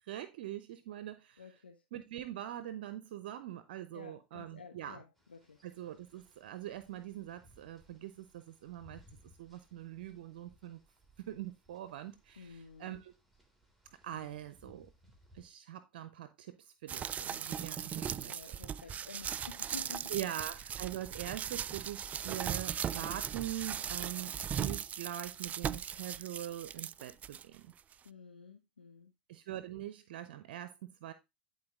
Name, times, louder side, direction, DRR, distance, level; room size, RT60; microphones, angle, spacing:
voice 1, 0.1-1.4 1.9-5.0 5.6-9.0 9.4-10.8 11.2-13.1 14.0-14.9 15.3-18.6 18.9-19.0 20.1-27.7 29.3-31.1, right 12 dB, 70° right, 0.7 m, -43 dB
voice 2, 1.4-1.8 3.9-5.6 12.4-13.0 14.1-14.5 18.3-20.2 28.0-29.1, left 5 dB, 90° left, 0.7 m, -52 dB
sound 1, 5.2-15.5, left 1 dB, ahead, 3.0 m, -65 dB
sound 2, 16.9-27.4 27.9-28.0, right 8 dB, 30° right, 0.3 m, -38 dB
10.5 x 4.5 x 3.6 m
hypercardioid pair, 85°, 5 cm